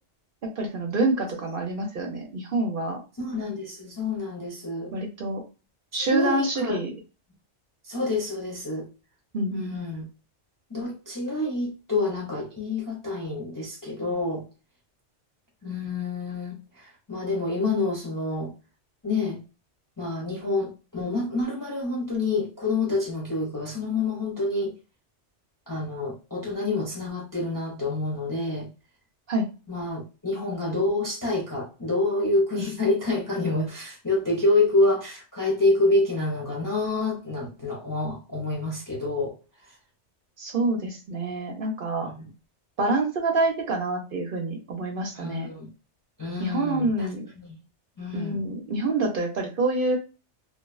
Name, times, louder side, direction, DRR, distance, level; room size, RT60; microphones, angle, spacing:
voice 1, 0.4-3.0 4.9-5.4 5.9-6.9 9.3-9.8 29.3-29.5 40.4-42.1 42.8-45.5 46.4-47.3 48.1-50.0, right 2 dB, 55° right, 0.8 m, -27 dB
voice 2, 3.2-4.9 5.9-6.8 7.8-8.9 9.5-10.0 10.7-14.4 15.6-18.5 19.0-19.4 20.0-24.7 25.7-28.7 29.7-39.3 42.1-42.2 45.2-45.7 46.2-47.1 47.4-47.5 48.0-48.4, left 2 dB, 30° left, 0.4 m, -27 dB
2.7 x 2.2 x 2.3 m
omnidirectional pair, 1.2 m